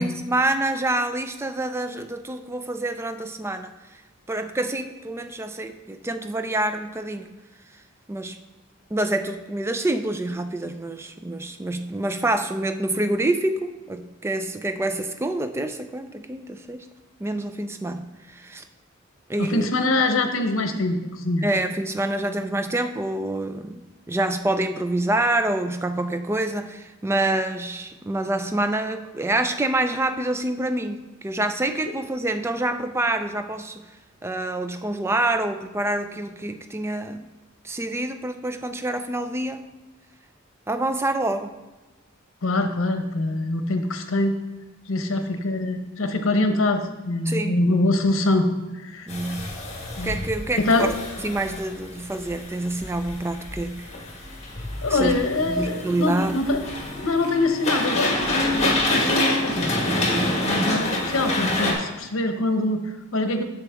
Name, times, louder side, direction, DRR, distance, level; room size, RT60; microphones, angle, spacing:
voice 1, 0.0-3.7 4.3-7.3 8.1-8.4 8.9-16.9 17.2-18.6 19.3-19.7 21.4-23.8 24.1-33.8 34.2-37.3 37.6-39.6 40.7-41.6 47.3-47.6 49.1-49.5 50.0-50.9 51.2-53.9 54.9-55.1 55.4-56.3 60.2-60.4, right 2 dB, 10° right, 9 dB, 0.4 m, -27 dB
voice 2, 19.4-21.5 31.8-31.9 42.4-44.4 44.9-48.5 48.7-49.1 50.0-50.2 50.6-50.9 54.8-56.6 56.9-59.8 60.4-63.4, left 2 dB, 70° left, 6 dB, 0.9 m, -24 dB
sound 1, 49.1-61.7, left 1 dB, 30° left, 1.5 m, -27 dB
8.1 x 6.9 x 3.5 m, 1.1 s
head